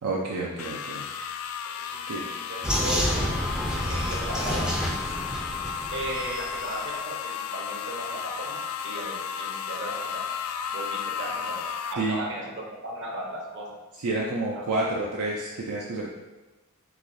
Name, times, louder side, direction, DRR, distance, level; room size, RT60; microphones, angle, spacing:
voice 1, 0.0-1.0 2.1-2.2 12.0-12.2 14.0-16.1, right 2 dB, 75° right, -3 dB, 0.5 m, -29 dB
sound 1, 0.6-11.9, left 7 dB, 75° left, 0.3 m, -34 dB
voice 2, 1.8-3.2 3.7-4.7 5.9-10.3 10.7-13.8 14.5-14.7, right 1 dB, 55° right, -2 dB, 1.0 m, -36 dB
Vehicle, 2.6-6.6, equal, 5° right, 0.4 m, -29 dB
4.8 x 3.7 x 2.6 m, 1.1 s
head